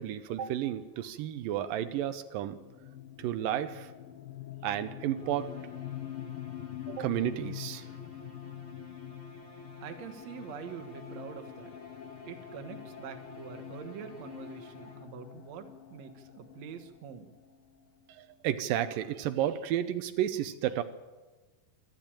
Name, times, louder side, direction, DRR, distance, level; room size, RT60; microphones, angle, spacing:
voice 1, 0.0-2.6 3.2-3.9 4.6-5.5 6.9-7.9 18.1-20.8, right 11 dB, 85° right, 10 dB, 2.5 m, -32 dB
sound 1, 2.5-18.1, left 11 dB, 85° left, 2.8 m, -45 dB
sound 2, 5.2-15.4, left 1 dB, 30° left, 1.0 m, -52 dB
voice 2, 9.8-11.7 12.3-17.3, right 7 dB, 60° right, 7 dB, 2.5 m, -45 dB
26.0 x 12.5 x 8.9 m, 1.2 s
omnidirectional pair, 3.9 m